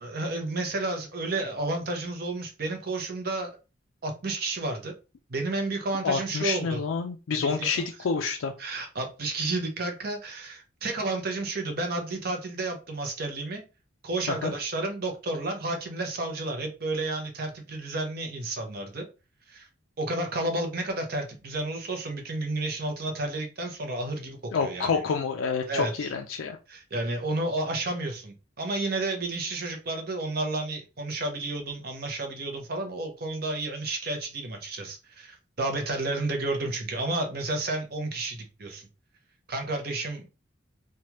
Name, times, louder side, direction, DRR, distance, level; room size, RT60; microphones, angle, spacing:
voice 1, 0.0-3.5 4.0-4.9 5.3-6.8 7.3-7.8 8.6-13.6 14.0-19.1 19.5-19.7 20.0-25.0 25.7-26.1 26.7-38.9 39.5-40.3, right 2 dB, 50° right, 0.7 m, -31 dB
voice 2, 6.0-8.5 14.4-14.5 24.5-26.6, left 5 dB, 90° left, 0.4 m, -28 dB
3.2 x 2.3 x 2.9 m
head